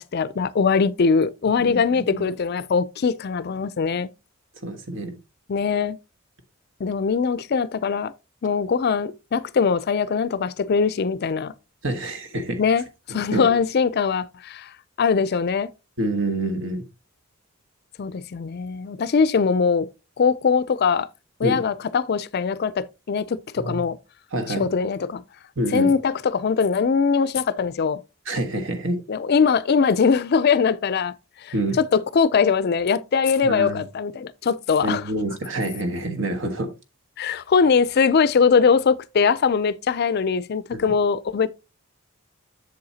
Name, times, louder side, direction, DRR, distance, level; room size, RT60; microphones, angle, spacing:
voice 1, 0.0-4.1 5.5-6.0 6.8-8.1 8.4-11.5 12.6-14.7 15.0-15.7 18.0-19.9 20.2-21.1 21.4-24.0 24.5-25.2 25.7-28.0 29.1-31.1 31.4-35.0 37.2-41.5, left 5 dB, 50° left, 0.4 m, -21 dB
voice 2, 1.6-2.2 4.6-5.2 11.8-12.6 13.1-13.4 16.0-16.8 21.4-21.6 23.6-23.8 24.3-24.6 25.6-25.9 28.3-29.0 31.5-31.8 33.4-33.8 34.8-36.7 40.8-40.9, right 1 dB, 60° right, 1.3 m, -27 dB
7.7 x 7.0 x 2.8 m
head